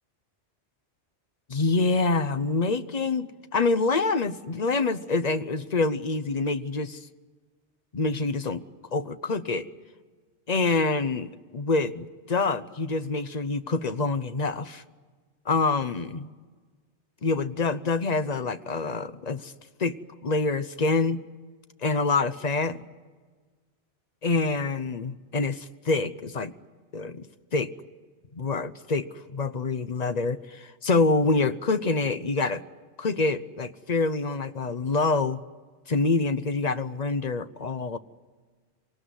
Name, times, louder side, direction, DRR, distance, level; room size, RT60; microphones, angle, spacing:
voice 1, 1.5-7.0 7.9-8.6 8.9-9.7 10.5-14.8 15.5-16.3 17.2-19.5 19.8-21.2 21.8-22.8 24.2-26.5 26.9-27.7 28.3-32.6 33.0-35.4 35.9-38.0, left 3 dB, 40° left, 12 dB, 0.9 m, -26 dB
25.5 x 18.5 x 9.8 m, 1.5 s
omnidirectional pair, 1.1 m